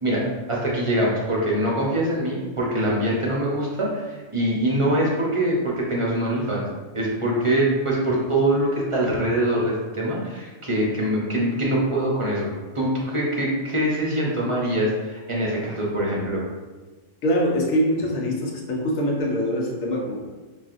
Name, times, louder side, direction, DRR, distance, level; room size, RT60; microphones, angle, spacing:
voice 1, 0.0-6.7 6.9-12.5 12.7-16.4, right 1 dB, 30° right, -4 dB, 0.6 m, -23 dB
voice 2, 17.2-20.3, equal, 80° left, -1 dB, 1.1 m, -23 dB
5.5 x 2.4 x 2.5 m, 1.3 s
omnidirectional pair, 1.4 m